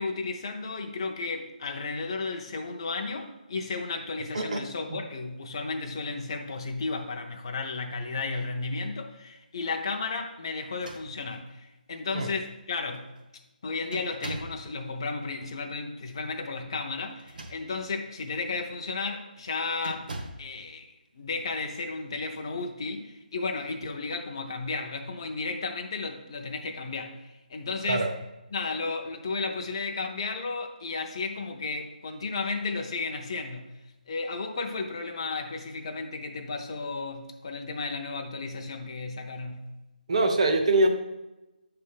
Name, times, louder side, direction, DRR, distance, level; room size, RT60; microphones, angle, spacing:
voice 1, 0.0-13.2 13.6-20.1 20.4-28.1 28.5-33.7 34.1-39.8, left 3 dB, 30° left, 3 dB, 0.5 m, -33 dB
sound 1, 10.6-11.6 12.4-12.5 12.9-13.2 13.9-14.7 17.1-17.9 18.5-18.7 19.8-20.5, right 2 dB, 65° right, 1.1 m, -41 dB
voice 2, 40.1-40.9, right 2 dB, 40° right, 5 dB, 0.8 m, -23 dB
7.4 x 3.3 x 5.5 m, 1.0 s
hypercardioid pair, 175°, 5 cm